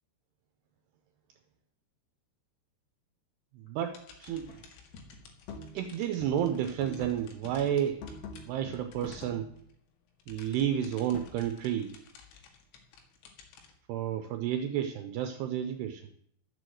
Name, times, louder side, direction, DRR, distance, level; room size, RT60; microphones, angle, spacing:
voice 1, 3.5-4.5 5.7-8.0 8.4-9.5 10.3-12.0 13.9-16.1, right 10 dB, 80° right, 8 dB, 2.5 m, -31 dB
sound 1, 3.6-12.5, left 3 dB, 40° left, 3.7 m, -54 dB
sound 2, 3.8-9.8 10.1-13.7, left 6 dB, 80° left, 4.1 m, -55 dB
sound 3, 4.3-4.6 4.9-5.9 6.2-7.2 7.5-9.7, left 2 dB, 60° left, 3.1 m, -46 dB
12.0 x 8.2 x 7.7 m, 0.69 s
omnidirectional pair, 5.4 m